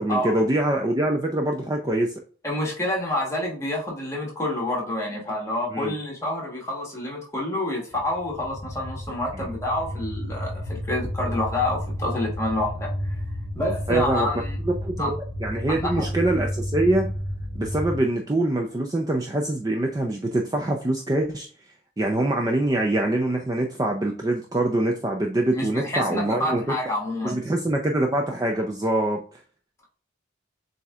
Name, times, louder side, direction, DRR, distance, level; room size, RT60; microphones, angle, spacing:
voice 1, 0.0-2.1 5.7-5.9 9.4-9.5 13.9-14.3 14.6-17.1 17.6-21.5 22.0-26.7 27.2-29.4, right 1 dB, 20° right, 2 dB, 0.4 m, -24 dB
voice 2, 2.4-12.9 13.5-14.6 15.0-15.1 15.7-16.1 25.5-27.4, left 1 dB, 15° left, -2 dB, 1.2 m, -28 dB
sound 1, 7.9-18.0, equal, 60° right, 1.4 m, -31 dB
7.2 x 2.7 x 2.4 m, 0.43 s
head